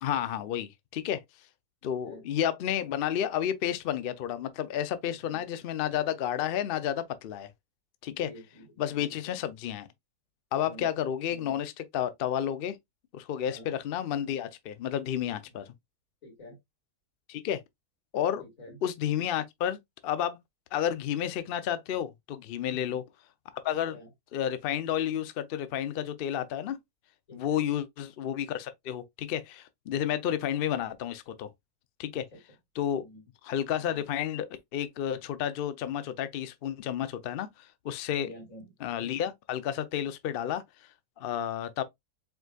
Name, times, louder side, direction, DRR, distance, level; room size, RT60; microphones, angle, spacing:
voice 1, 0.0-1.2 1.8-7.5 8.0-8.3 8.8-9.9 10.5-12.8 13.1-15.6 17.3-17.6 18.1-18.4 18.8-19.8 20.0-20.4 20.7-23.0 23.5-24.0 24.3-26.8 27.3-31.5 32.0-32.2 32.8-33.0 33.4-37.5 37.8-38.3 38.8-40.6 41.2-41.8, left 10 dB, 80° left, 0.5 m, -31 dB
voice 2, 5.1-5.4 8.1-9.4 10.5-10.9 13.4-13.7 16.2-16.6 18.4-18.8 23.9-24.1 27.3-27.7 32.1-32.2 33.0-33.3 38.1-38.6, equal, 55° left, 3.1 m, -49 dB
4.8 x 3.8 x 2.3 m
omnidirectional pair, 1.7 m